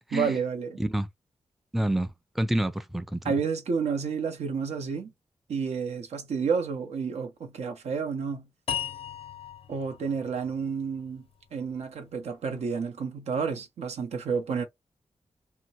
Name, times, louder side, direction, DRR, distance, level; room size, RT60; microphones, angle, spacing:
voice 1, 0.1-0.8 3.2-5.1 5.5-8.5 9.7-11.3 11.5-14.6, right 5 dB, 90° right, 0.7 m, -30 dB
voice 2, 1.7-3.2, right 1 dB, ahead, 0.4 m, -28 dB
sound 1, 8.7-11.9, left 8 dB, 65° left, 0.5 m, -38 dB
2.8 x 2.1 x 2.7 m
cardioid pair, 75°, 11 cm